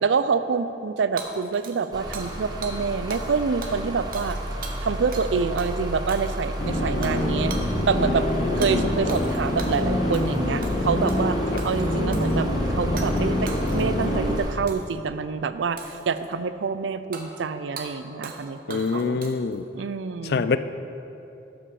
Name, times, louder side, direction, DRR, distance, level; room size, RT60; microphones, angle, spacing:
voice 1, 0.0-4.4 4.8-7.5 7.9-8.3 8.6-11.4 11.6-19.2 19.7-20.5, right 5 dB, 85° right, 12 dB, 0.4 m, -26 dB
Hammer / Shatter, 1.2-2.4 2.6-2.8 3.1-3.3 3.6-5.3 5.6-5.7 6.1-6.5 7.0-7.2 7.5-7.7 8.6-8.7 9.1-9.8 10.1-10.4 10.6-11.2 11.6-12.4 13.0-13.2 13.5-14.1 14.7-15.0 15.8-16.3 17.1-17.2 17.8-17.9 18.2-18.4 18.7-19.5, right 4 dB, 50° right, 0.8 m, -39 dB
sound 1, 1.9-14.5, equal, 20° right, 0.9 m, -32 dB
sound 2, 6.6-14.4, left 1 dB, 35° left, 0.7 m, -26 dB
voice 2, 8.4-9.0 18.7-19.7 20.2-20.6, left 4 dB, 55° left, 12 dB, 0.3 m, -25 dB
12.0 x 6.0 x 4.8 m, 2.8 s
head